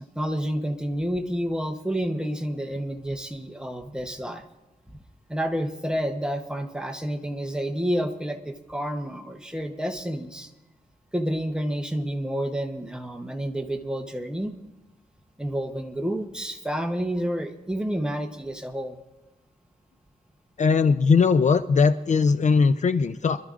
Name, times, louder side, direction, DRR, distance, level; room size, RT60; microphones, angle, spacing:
voice 1, 0.0-4.4 4.9-5.0 5.3-10.5 11.1-14.5 15.4-19.0, equal, 5° right, 4 dB, 0.9 m, -29 dB
voice 2, 20.6-23.4, left 5 dB, 50° left, 11 dB, 0.4 m, -20 dB
25.5 x 12.5 x 2.5 m, 1.0 s
wide cardioid pair, 160°, 16 cm